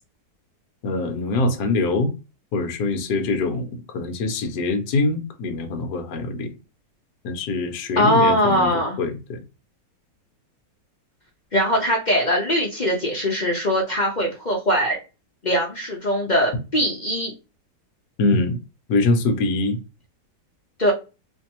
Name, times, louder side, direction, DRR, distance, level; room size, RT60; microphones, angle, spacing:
voice 1, 0.8-2.1 2.5-6.5 7.2-8.7 9.0-9.4 18.2-18.6 18.9-19.8, left 3 dB, 65° left, 1.3 m, -23 dB
voice 2, 8.0-9.0 11.5-15.0 15.4-17.3 20.8-20.9, equal, 45° left, 0.5 m, -21 dB
4.4 x 2.6 x 2.9 m
omnidirectional pair, 1.9 m